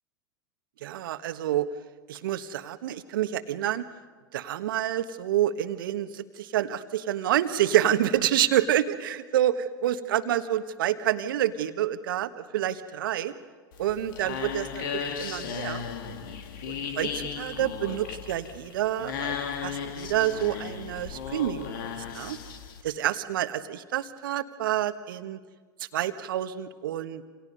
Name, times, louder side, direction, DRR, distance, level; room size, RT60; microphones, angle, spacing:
voice 1, 0.8-1.7 2.1-3.8 4.3-13.3 13.8-15.8 16.7-19.4 19.6-22.4 22.8-25.4 25.8-27.2, right 12 dB, 65° right, 10 dB, 1.5 m, -28 dB
sound 1, 13.7-22.8, left 7 dB, 65° left, 2.4 m, -35 dB
28.5 x 28.0 x 5.5 m, 1.5 s
figure-of-eight pair, 85°, 12 cm